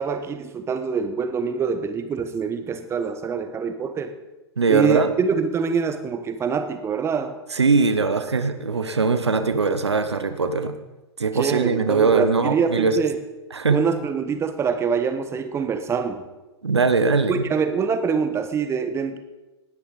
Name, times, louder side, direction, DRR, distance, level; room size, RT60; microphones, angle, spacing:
voice 1, 0.0-4.1 4.7-7.3 11.3-13.2 13.7-16.2 17.3-19.2, right 6 dB, 20° right, 9 dB, 1.2 m, -25 dB
voice 2, 4.6-5.1 7.5-10.8 11.2-13.0 13.5-13.8 16.6-17.5, right 4 dB, 75° right, 10 dB, 1.2 m, -21 dB
19.0 x 10.0 x 4.1 m, 1.1 s
figure-of-eight pair, 100°, 14 cm